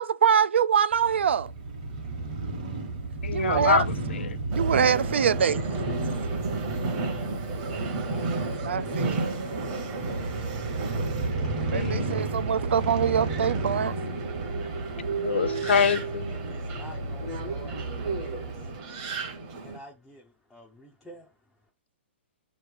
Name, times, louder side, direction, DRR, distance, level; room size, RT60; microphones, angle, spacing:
voice 1, 0.0-1.5 3.3-3.8 4.5-5.6 8.7-9.3 11.5-13.9, right 7 dB, 80° right, 0.4 m, -24 dB
Crow / Motorcycle, 0.9-18.8, right 3 dB, 40° right, 1.2 m, -33 dB
voice 2, 3.2-4.4 11.7-12.3 15.2-16.3, left 7 dB, 75° left, 0.5 m, -26 dB
Subway metro underground, 4.5-19.8, right 3 dB, 20° right, 0.9 m, -33 dB
voice 3, 5.9-11.4 15.7-21.7, left 1 dB, ahead, 0.4 m, -51 dB
7.4 x 3.1 x 4.9 m
hypercardioid pair, 180°, 6 cm